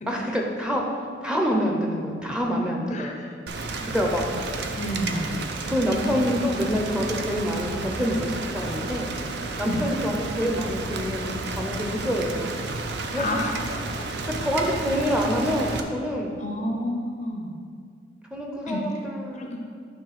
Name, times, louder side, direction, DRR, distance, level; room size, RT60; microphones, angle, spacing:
voice 1, 0.1-3.2 3.9-4.3 5.7-9.1 9.6-12.5 13.1-13.3 14.4-16.4 18.3-19.5, equal, 5° right, 0 dB, 0.7 m, -26 dB
voice 2, 2.9-3.3 4.7-5.5 9.7-9.9 13.2-13.5 16.4-17.6 18.7-18.8 19.4-19.6, left 1 dB, 35° left, 2 dB, 0.6 m, -30 dB
Rain, 3.5-15.8, right 3 dB, 55° right, 0.5 m, -32 dB
9.4 x 3.2 x 5.9 m, 2.1 s
head